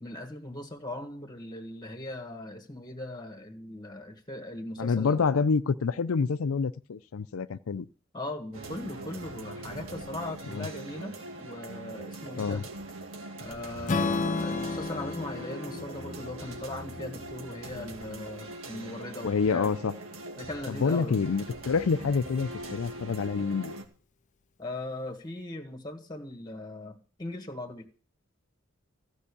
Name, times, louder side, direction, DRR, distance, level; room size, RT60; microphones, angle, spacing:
voice 1, 0.0-5.2 8.1-12.7 13.4-19.7 20.4-21.1 24.6-27.9, left 1 dB, 20° left, 1.6 m, -39 dB
voice 2, 4.8-7.9 10.5-10.7 12.4-12.6 19.2-19.9 20.7-23.7, left 5 dB, 85° left, 0.5 m, -27 dB
sound 1, 8.5-23.8, right 1 dB, 75° right, 2.1 m, -42 dB
Strum, 13.9-18.1, left 3 dB, 40° left, 0.6 m, -33 dB
15.0 x 5.6 x 8.5 m
head